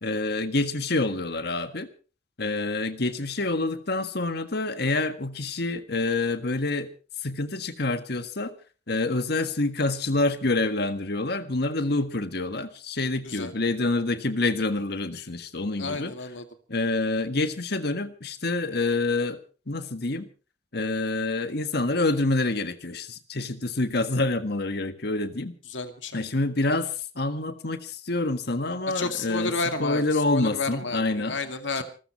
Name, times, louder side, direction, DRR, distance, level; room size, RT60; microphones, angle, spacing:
voice 1, 0.0-1.9 2.4-6.9 7.2-8.5 8.9-16.1 16.7-19.4 19.7-20.3 20.7-25.5 26.1-29.5 29.8-31.4 31.8-31.9, left 2 dB, 60° left, 9 dB, 1.6 m, -27 dB
voice 2, 13.2-13.5 15.8-16.5 25.7-26.3 28.9-31.8, left 3 dB, 80° left, 7 dB, 2.2 m, -31 dB
28.0 x 14.0 x 3.1 m, 0.35 s
head